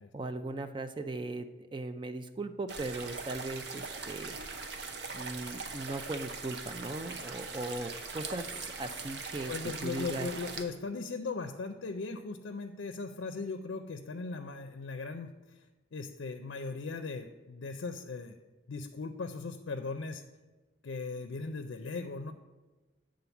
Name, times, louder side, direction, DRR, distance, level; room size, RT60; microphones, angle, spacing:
voice 1, 0.1-4.4 5.1-9.5 9.8-10.3, right 2 dB, 25° right, 9 dB, 0.4 m, -38 dB
sound 1, 2.7-10.6, right 4 dB, 60° right, 0.8 m, -41 dB
voice 2, 9.5-15.3 15.9-18.4 18.7-20.2 20.8-22.3, left 4 dB, 80° left, 7 dB, 0.5 m, -38 dB
8.5 x 3.8 x 6.9 m, 1.2 s
head